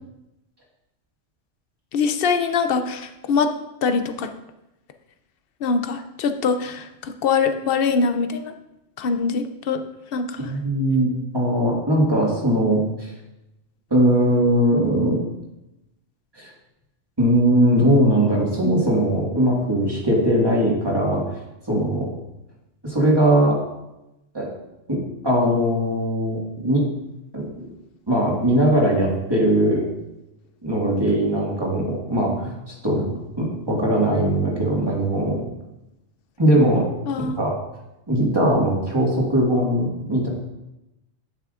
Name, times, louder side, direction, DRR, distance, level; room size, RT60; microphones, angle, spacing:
voice 1, 1.9-3.5 3.8-4.3 5.6-8.5 9.0-9.8 10.1-10.4 37.1-37.4, left 5 dB, 60° left, 8 dB, 0.7 m, -23 dB
voice 2, 10.4-13.1 13.9-15.2 16.4-16.5 17.2-21.2 21.7-22.1 22.8-23.6 24.3-24.5 24.9-25.0 25.2-26.8 27.3-27.5 28.1-29.8 30.6-33.0 33.4-35.4 36.4-36.9 37.2-37.5 38.1-40.3, right 1 dB, 20° right, -3 dB, 1.8 m, -20 dB
10.0 x 5.7 x 2.5 m, 0.92 s
omnidirectional pair, 1.2 m